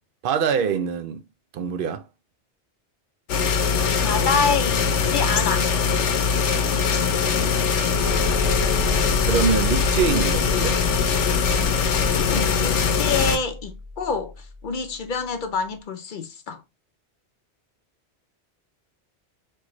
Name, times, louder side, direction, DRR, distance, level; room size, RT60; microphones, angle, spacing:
voice 1, 0.2-1.2 1.5-2.1 9.2-10.8, right 7 dB, 60° right, 0.6 m, -24 dB
sound 1, 3.3-13.4, left 6 dB, 80° left, 1.0 m, -22 dB
voice 2, 4.0-5.7 12.2-16.6, left 5 dB, 55° left, 0.6 m, -27 dB
sound 2, 7.9-14.5, left 2 dB, 85° right, 2.2 m, -31 dB
4.3 x 3.0 x 2.9 m
omnidirectional pair, 1.2 m